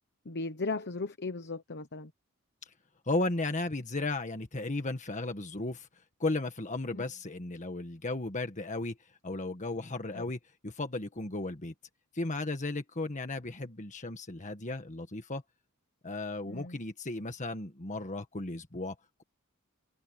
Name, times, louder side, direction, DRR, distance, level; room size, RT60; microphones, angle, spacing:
voice 1, 0.2-2.1 6.9-7.0 10.1-10.2 16.5-16.8, left 3 dB, 50° left, 1.1 m, -36 dB
voice 2, 3.0-5.9 6.2-9.0 9.2-11.7 12.1-15.4 16.0-19.2, left 2 dB, 35° left, 1.6 m, -35 dB
head